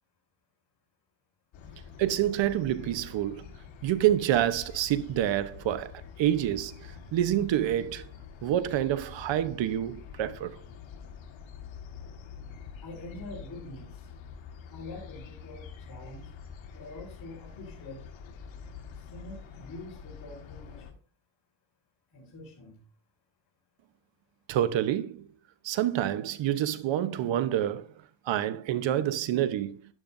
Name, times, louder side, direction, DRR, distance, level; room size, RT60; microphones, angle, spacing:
sound 1, 1.5-20.9, left 7 dB, 75° left, 1.9 m, -46 dB
voice 1, 2.0-3.5 3.8-8.0 8.4-10.6 24.5-25.3 25.6-27.9 28.3-29.8, right 12 dB, 70° right, 1.0 m, -27 dB
voice 2, 12.8-14.0 14.7-16.3 16.7-18.0 19.1-21.0 22.1-22.8, left 2 dB, 50° left, 4.7 m, -45 dB
11.5 x 11.0 x 2.6 m
cardioid pair, 100°, 47 cm